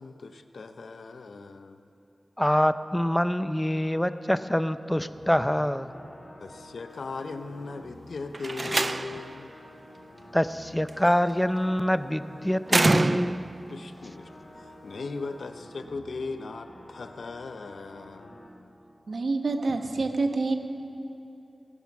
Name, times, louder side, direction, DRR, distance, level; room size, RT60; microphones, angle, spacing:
voice 1, 0.0-1.8 6.4-9.5 13.7-18.3, left 3 dB, 80° left, 9 dB, 0.7 m, -38 dB
voice 2, 2.4-5.9 10.3-13.4, equal, 10° left, 13 dB, 0.6 m, -25 dB
sound 1, 5.1-18.5, left 1 dB, 45° left, 4.4 m, -49 dB
Slam, 8.3-9.4 10.9-11.3 12.7-13.6, right 2 dB, 45° right, 0.3 m, -25 dB
voice 3, 19.1-20.6, right 3 dB, 75° right, 6 dB, 1.2 m, -27 dB
18.5 x 9.6 x 7.3 m, 2.9 s
cardioid pair, 45°, 0 cm